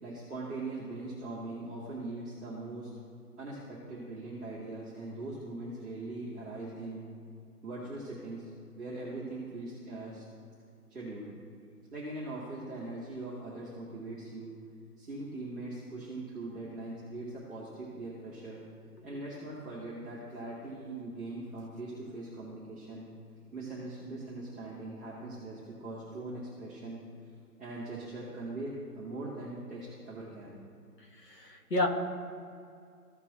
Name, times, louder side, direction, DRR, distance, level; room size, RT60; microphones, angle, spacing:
voice 1, 0.0-2.9 3.4-7.1 7.6-8.5 8.8-10.2 10.9-11.3 11.9-14.5 15.0-18.6 19.0-23.1 23.5-27.0 27.6-30.6, right 2 dB, ahead, -16 dB, 0.8 m, -41 dB
voice 2, 31.3-31.9, left 2 dB, 90° left, 1 dB, 2.0 m, -30 dB
15.0 x 6.0 x 2.9 m, 2.4 s
hypercardioid pair, 160°, 48 cm